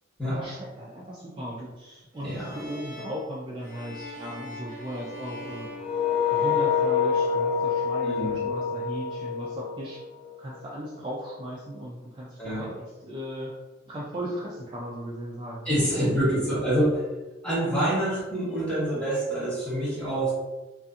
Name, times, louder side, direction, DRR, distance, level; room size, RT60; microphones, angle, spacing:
voice 1, 0.2-5.7 6.3-10.0 10.4-12.8 13.0-13.5 13.9-16.1, equal, 25° right, -5 dB, 0.3 m, -37 dB
sound 1, 2.1-6.8, left 1 dB, 40° left, 1.0 m, -43 dB
voice 2, 2.2-2.6 8.0-8.5 12.4-12.7 15.6-17.0 17.4-20.3, right 1 dB, 5° left, -9 dB, 1.0 m, -26 dB
sound 2, 5.8-10.6, left 6 dB, 25° left, 0.6 m, -26 dB
2.6 x 2.5 x 2.3 m, 1.1 s
head